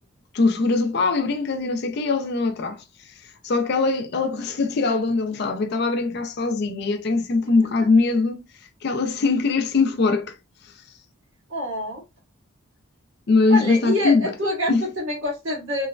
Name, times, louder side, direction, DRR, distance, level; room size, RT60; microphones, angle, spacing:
voice 1, 0.3-8.4 8.8-10.4 10.6-10.7 13.3-14.2 14.7-14.9, left 3 dB, 50° left, 0.4 m, -22 dB
voice 2, 11.5-12.0 13.5-15.9, left 1 dB, 65° right, 1.4 m, -26 dB
3.0 x 2.1 x 2.3 m
head